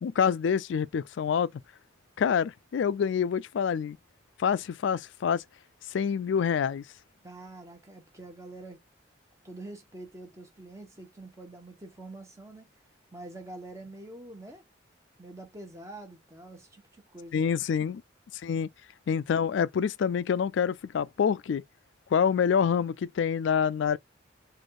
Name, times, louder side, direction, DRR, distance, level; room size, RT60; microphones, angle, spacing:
voice 1, 0.0-1.5 2.2-4.0 4.4-5.4 5.9-6.8 17.3-18.0 18.4-18.7 19.1-21.6 22.1-24.0, left 7 dB, 70° left, 0.3 m, -26 dB
voice 2, 7.2-8.8 9.4-12.7 13.1-14.6 15.2-17.6, right 2 dB, 15° right, 1.2 m, -46 dB
4.2 x 2.5 x 4.7 m
head